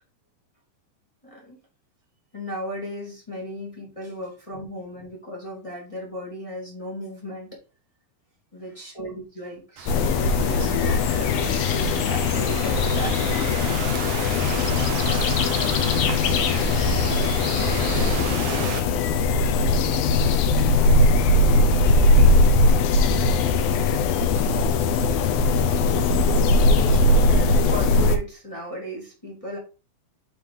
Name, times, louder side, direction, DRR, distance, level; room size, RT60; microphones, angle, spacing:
voice 1, 1.2-1.6 2.3-7.6 8.5-13.6 20.3-20.4 20.8-20.9 26.3-29.6, equal, 15° left, -3 dB, 1.5 m, -36 dB
Thunderstorm / Rain, 9.8-18.8, right 7 dB, 70° right, 1.6 m, -33 dB
sound 1, 9.9-28.2, left 3 dB, 80° left, 2.6 m, -20 dB
7.3 x 4.7 x 3.7 m, 0.33 s
omnidirectional pair, 4.3 m